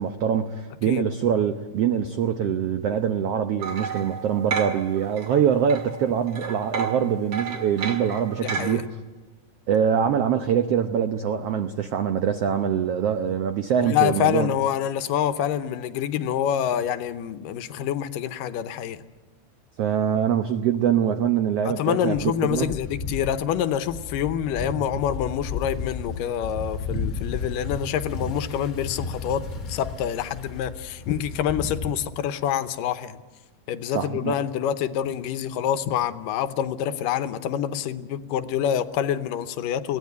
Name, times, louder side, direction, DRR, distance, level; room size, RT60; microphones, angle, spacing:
voice 1, 0.0-8.9 9.7-14.5 19.8-22.7 33.9-34.4, right 8 dB, 85° right, 8 dB, 1.3 m, -24 dB
sound 1, 3.6-5.4 5.7-8.7, right 6 dB, 40° right, 2.2 m, -32 dB
voice 2, 8.4-8.8 13.8-19.0 21.7-33.2 33.7-40.0, left 10 dB, 80° left, 11 dB, 2.4 m, -26 dB
sound 2, 22.2-31.9, left 4 dB, 45° left, 1.1 m, -33 dB
22.0 x 17.0 x 9.4 m, 1.3 s
omnidirectional pair, 4.0 m